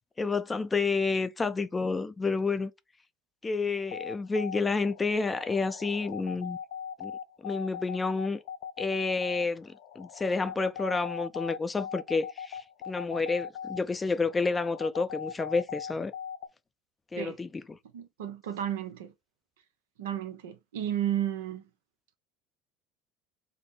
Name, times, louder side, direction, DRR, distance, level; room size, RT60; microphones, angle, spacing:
voice 1, 0.2-2.7 3.4-6.6 7.0-7.1 7.4-8.4 8.8-16.1 17.1-17.8, left 4 dB, 20° left, 0.5 m, -30 dB
sound 1, 3.7-16.5, left 8 dB, 80° left, 0.4 m, -40 dB
voice 2, 17.9-19.1 20.0-21.6, right 10 dB, 80° right, 0.6 m, -33 dB
3.5 x 2.0 x 4.0 m
hypercardioid pair, 75°, 0 cm